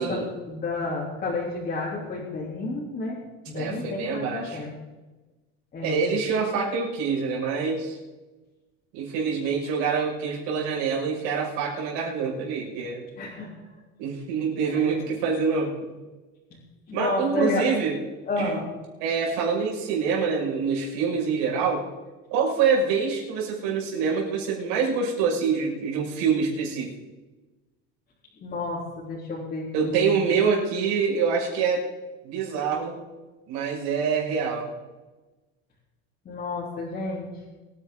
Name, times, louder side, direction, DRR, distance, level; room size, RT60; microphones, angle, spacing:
voice 1, 0.0-3.2 3.5-4.8 5.7-6.1 13.2-13.5 14.7-15.0 16.5-16.6 16.9-17.6 18.3-18.6 28.4-30.2 36.2-37.3, left 2 dB, 30° left, -7 dB, 3.4 m, -31 dB
voice 2, 3.5-4.6 5.8-8.0 8.9-13.0 14.0-15.9 16.9-18.0 18.4-18.6 19.0-21.8 22.3-26.9 29.7-31.8 32.2-33.0 33.5-34.7, right 5 dB, 65° right, -2 dB, 6.1 m, -26 dB
24.5 x 10.0 x 3.9 m, 1.2 s
cardioid pair, 150°, 31 cm